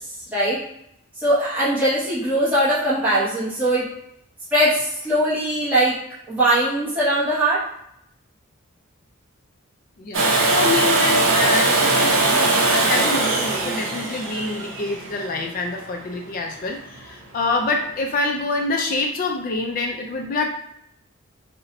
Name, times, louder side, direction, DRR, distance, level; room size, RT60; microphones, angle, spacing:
voice 1, 1.2-3.8 4.5-5.9 6.3-7.6, right 1 dB, 5° right, -10 dB, 0.8 m, -20 dB
voice 2, 10.0-20.5, left 3 dB, 40° left, 3 dB, 0.3 m, -26 dB
Domestic sounds home sounds, 10.1-15.9 17.9-18.0, right 2 dB, 60° right, 0.6 m, -20 dB
2.6 x 2.1 x 3.9 m, 0.76 s
head